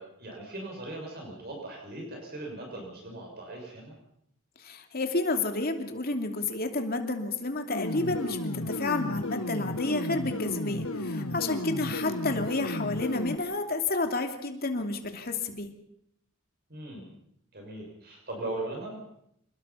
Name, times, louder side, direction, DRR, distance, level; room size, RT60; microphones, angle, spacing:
voice 1, 0.0-3.9 11.4-11.8 16.7-17.1 17.5-19.0, right 2 dB, 50° right, 0 dB, 6.5 m, -39 dB
voice 2, 4.6-15.7, left 2 dB, 45° left, 5 dB, 2.8 m, -30 dB
sound 1, 7.7-13.4, left 1 dB, 85° left, 1.8 m, -33 dB
28.5 x 20.0 x 5.8 m, 0.75 s
head